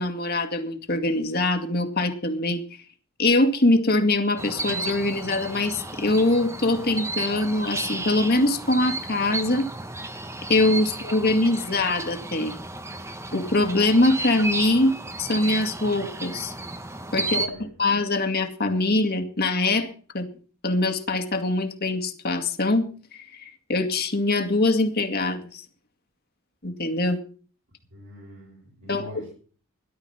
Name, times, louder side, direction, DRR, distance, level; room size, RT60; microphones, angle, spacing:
voice 1, 0.0-2.6 3.2-9.7 10.5-12.6 13.3-14.9 15.2-16.5 17.1-17.5 17.8-20.3 20.6-25.7 26.6-27.2 28.9-29.1, left 2 dB, 45° left, 2.2 m, -23 dB
sound 1, 4.4-17.5, right 2 dB, 15° right, 1.1 m, -33 dB
voice 2, 17.2-17.8 27.9-29.3, left 1 dB, 65° right, 7.4 m, -45 dB
17.5 x 11.5 x 5.7 m
head